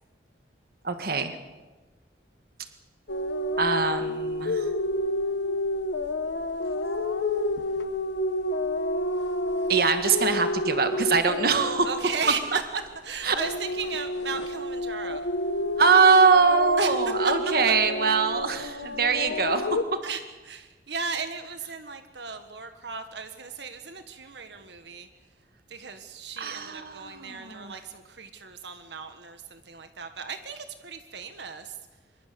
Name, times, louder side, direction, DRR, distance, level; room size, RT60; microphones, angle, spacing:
voice 1, 0.8-1.3 3.6-4.7 9.7-12.0 13.2-13.4 15.8-20.0 26.4-27.7, right 5 dB, 55° right, 8 dB, 1.7 m, -23 dB
sound 1, 3.1-12.9 13.2-19.8, left 1 dB, 80° left, 1.4 m, -29 dB
voice 2, 11.8-12.6 13.0-15.3 16.8-17.0 17.2-17.3 20.0-25.1 25.7-31.8, right 5 dB, 75° right, 8 dB, 1.5 m, -36 dB
25.0 x 23.0 x 6.9 m, 1.2 s
head